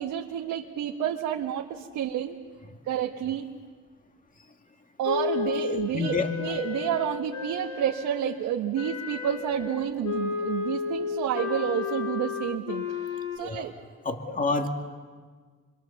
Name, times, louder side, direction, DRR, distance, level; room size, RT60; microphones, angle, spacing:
voice 1, 0.0-2.4 2.8-3.5 5.0-13.7, right 10 dB, 85° right, 1 dB, 1.4 m, -30 dB
Wind instrument woodwind instrument, 5.0-8.4 8.7-13.4, left 7 dB, 90° left, 2.2 m, -33 dB
voice 2, 5.7-6.3 13.4-13.7 14.0-14.7, left 3 dB, 25° left, 4 dB, 2.3 m, -28 dB
26.5 x 23.0 x 7.2 m, 1.5 s
cardioid pair, 90°, 30 cm